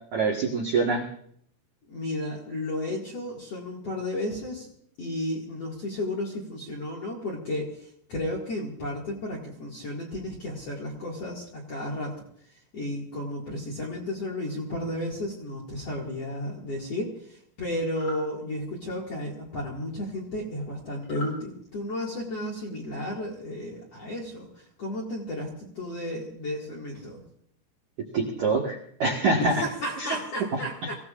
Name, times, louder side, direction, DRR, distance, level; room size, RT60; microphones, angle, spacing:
voice 1, 0.1-1.0 28.1-29.5 30.0-30.1, right 3 dB, 60° right, -2 dB, 2.0 m, -25 dB
voice 2, 1.9-4.7 5.0-12.2 12.7-27.2 29.4-30.9, left 1 dB, 50° left, -2 dB, 2.1 m, -33 dB
sound 1, 17.9-18.2 21.0-21.4, left 2 dB, 30° left, 6.7 m, -39 dB
26.5 x 16.5 x 2.5 m, 0.65 s
omnidirectional pair, 5.8 m